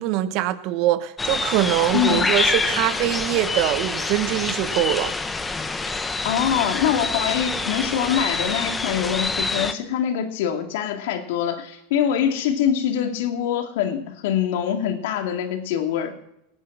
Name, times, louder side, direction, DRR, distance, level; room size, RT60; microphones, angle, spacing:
voice 1, 0.0-5.1, right 14 dB, 55° right, 12 dB, 1.3 m, -23 dB
sound 1, 1.2-9.7, left 3 dB, 15° left, 1.1 m, -26 dB
voice 2, 1.9-2.3 6.2-16.1, left 9 dB, 70° left, 4 dB, 2.4 m, -24 dB
18.5 x 8.3 x 7.4 m, 0.80 s
hypercardioid pair, 110°, 0 cm